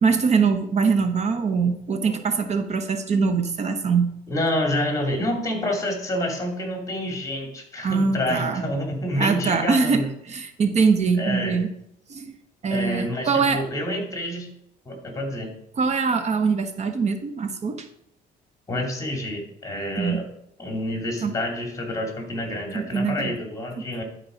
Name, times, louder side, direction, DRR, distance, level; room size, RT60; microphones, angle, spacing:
voice 1, 0.0-4.1 7.8-8.6 9.2-11.7 12.1-12.4 12.6-13.6 15.8-17.9 20.0-20.2 21.2-21.3 22.7-23.3, right 5 dB, 40° right, 8 dB, 0.9 m, -23 dB
voice 2, 4.3-10.1 11.2-11.6 12.7-14.5 14.9-15.5 18.7-20.3 20.6-24.0, left 1 dB, 20° left, 2 dB, 2.5 m, -28 dB
11.5 x 4.7 x 5.0 m, 0.77 s
cardioid pair, 110°, 17 cm